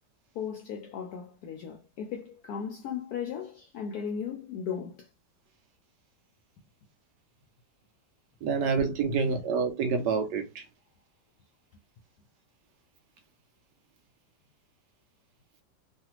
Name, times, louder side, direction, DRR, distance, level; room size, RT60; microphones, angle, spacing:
voice 1, 0.3-5.1 8.5-8.7 9.0-9.4, left 7 dB, 75° left, 0.9 m, -37 dB
voice 2, 8.4-10.6, right 5 dB, 70° right, 1.1 m, -27 dB
3.3 x 2.4 x 2.8 m
omnidirectional pair, 2.1 m